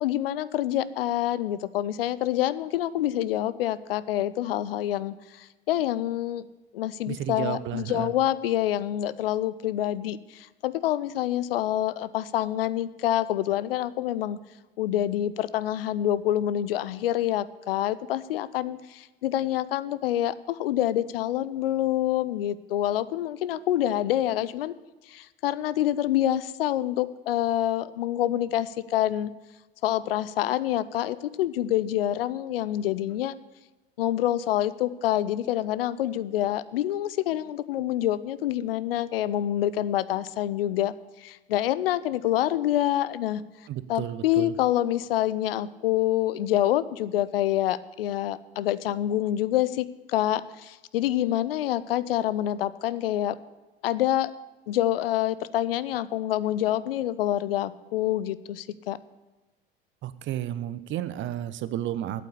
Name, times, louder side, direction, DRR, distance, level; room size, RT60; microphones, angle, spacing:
voice 1, 0.0-6.4 6.7-14.4 14.8-24.7 25.1-29.3 29.8-33.3 34.0-40.9 41.2-43.4 43.9-53.4 53.8-54.3 54.7-59.0, left 13 dB, 75° left, 17 dB, 0.5 m, -27 dB
voice 2, 7.1-8.1 43.7-44.5 60.0-62.2, right 12 dB, 40° right, 14 dB, 0.7 m, -32 dB
8.4 x 8.3 x 8.4 m, 1.1 s
figure-of-eight pair, 70°, 29 cm